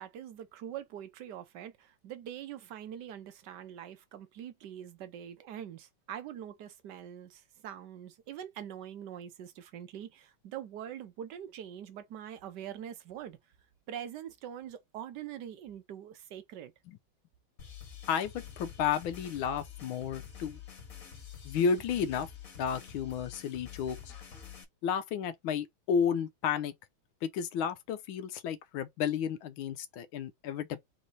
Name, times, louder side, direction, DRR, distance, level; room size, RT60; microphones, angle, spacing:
voice 1, 0.0-13.4 13.9-16.7, right 10 dB, 65° right, 1.3 m, -44 dB
sound 1, 17.6-24.6, left 8 dB, 45° left, 1.8 m, -48 dB
voice 2, 18.1-20.6 21.4-22.3 22.6-24.0 24.8-26.7 27.2-30.8, left 7 dB, 80° left, 1.4 m, -32 dB
4.2 x 3.1 x 4.0 m
omnidirectional pair, 2.3 m